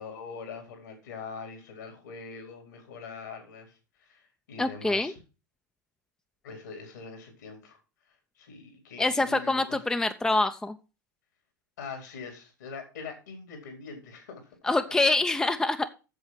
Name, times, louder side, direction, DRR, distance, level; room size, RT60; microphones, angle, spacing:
voice 1, 0.0-5.2 6.4-7.8 8.4-9.8 11.8-14.7, left 5 dB, 70° left, 4 dB, 4.1 m, -43 dB
voice 2, 4.6-5.1 9.0-10.8 14.6-15.9, left 2 dB, 5° left, 9 dB, 0.7 m, -25 dB
8.1 x 7.2 x 5.9 m, 0.32 s
figure-of-eight pair, 90°, 10 cm